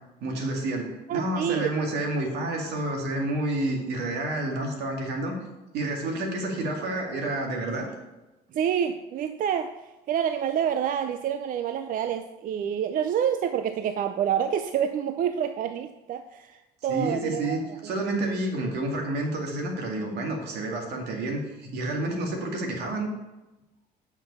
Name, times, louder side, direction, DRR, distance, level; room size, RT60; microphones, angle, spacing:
voice 1, 0.2-5.3 5.7-7.9 16.9-23.1, right 1 dB, 80° right, 1 dB, 2.2 m, -29 dB
voice 2, 1.1-1.7 8.5-17.9, right 9 dB, 55° right, 9 dB, 0.5 m, -28 dB
9.1 x 6.0 x 5.4 m, 1.0 s
cardioid pair, 110°, 17 cm